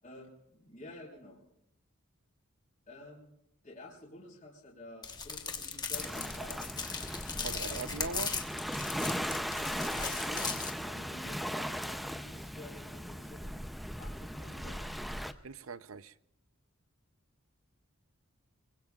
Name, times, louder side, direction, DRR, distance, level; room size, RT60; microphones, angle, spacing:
voice 1, 0.0-1.4 2.9-3.3 3.6-6.6 9.7-10.6 10.8-13.6 14.0-14.8, left 1 dB, 40° left, 4.6 m, -50 dB
sound 1, 5.0-10.7, left 5 dB, 20° left, 1.2 m, -38 dB
Waves surf, 5.9-15.3, equal, ahead, 0.6 m, -38 dB
voice 2, 7.4-8.3 15.4-16.1, right 5 dB, 65° right, 0.7 m, -40 dB
24.5 x 23.5 x 2.4 m
head